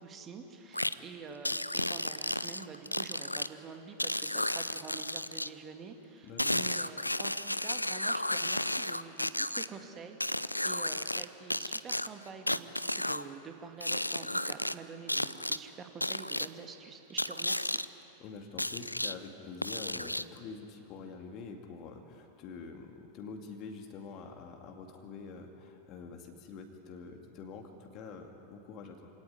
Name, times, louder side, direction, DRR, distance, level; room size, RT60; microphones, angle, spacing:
voice 1, 0.0-17.8, right 5 dB, 25° right, 5 dB, 2.2 m, -47 dB
sound 1, 0.7-0.9 1.5-3.5 4.0-5.5 6.4-9.7 10.2-11.3 11.5-13.2 13.8-14.7 15.1-15.6 16.0-16.5 17.2-17.9 18.6-19.1 19.6-20.4, left 1 dB, 85° left, 0.5 m, -33 dB
voice 2, 6.2-6.6 18.2-29.1, left 5 dB, 35° left, 3 dB, 2.3 m, -46 dB
27.0 x 18.0 x 9.7 m, 3.0 s
figure-of-eight pair, 90°, 0 cm